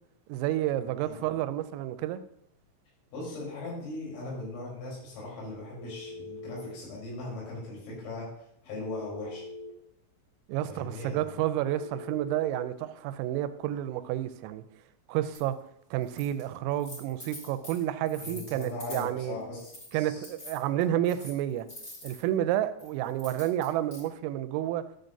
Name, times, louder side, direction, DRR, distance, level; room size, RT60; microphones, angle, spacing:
voice 1, 0.3-2.2 10.5-14.6 15.1-15.6 15.9-19.4 19.9-21.7 22.0-24.8, right 12 dB, 90° right, 3.2 m, -30 dB
voice 2, 3.1-8.3 8.6-9.4 10.7-11.4 18.2-20.3, left 2 dB, 80° left, 6.4 m, -39 dB
Telephone, 5.8-6.8 8.7-9.7 11.7-12.7, left 3 dB, 50° left, 1.7 m, -42 dB
sound 1, 15.3-15.4 16.0-16.4 16.7-19.1 19.6-19.9 20.2-22.2 22.8-24.0, left 1 dB, 30° left, 2.1 m, -45 dB
12.0 x 7.7 x 2.6 m
omnidirectional pair, 5.8 m